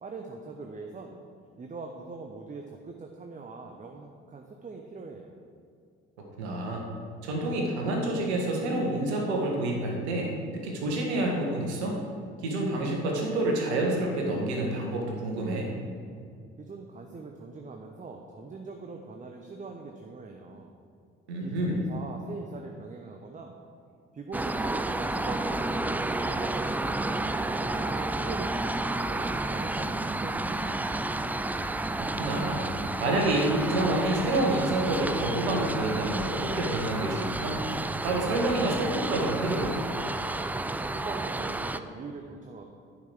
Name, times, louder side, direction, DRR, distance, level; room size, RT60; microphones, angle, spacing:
voice 1, 0.0-1.2 1.6-5.3 16.6-20.7 21.4-23.6 24.1-27.0 27.6-31.1 40.8-42.6, right 4 dB, 20° right, 3 dB, 0.9 m, -42 dB
voice 2, 6.4-6.9 7.2-10.3 10.6-12.0 12.4-15.7 21.3-21.9 32.0-32.7 33.0-37.6 38.0-39.7, right 1 dB, 70° right, 0 dB, 1.6 m, -28 dB
sound 1, 24.3-41.8, right 2 dB, 5° right, 0.3 m, -31 dB
10.5 x 5.9 x 6.3 m, 2.3 s
figure-of-eight pair, 50°, 34 cm